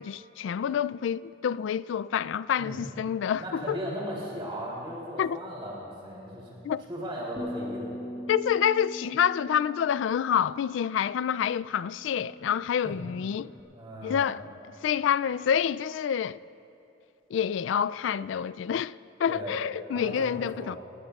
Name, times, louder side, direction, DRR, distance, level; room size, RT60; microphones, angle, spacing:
voice 1, 0.0-3.8 5.2-5.4 6.6-6.9 8.3-13.5 14.0-14.5 14.8-16.4 17.3-20.8, left 8 dB, 85° left, 0.3 m, -28 dB
voice 2, 3.4-6.6 6.9-7.9 12.8-13.0 13.7-14.3 19.3-19.5 19.9-20.8, equal, 30° right, 3.3 m, -37 dB
Bass guitar, 7.4-13.6, equal, 25° left, 1.0 m, -43 dB
28.0 x 19.0 x 2.4 m
head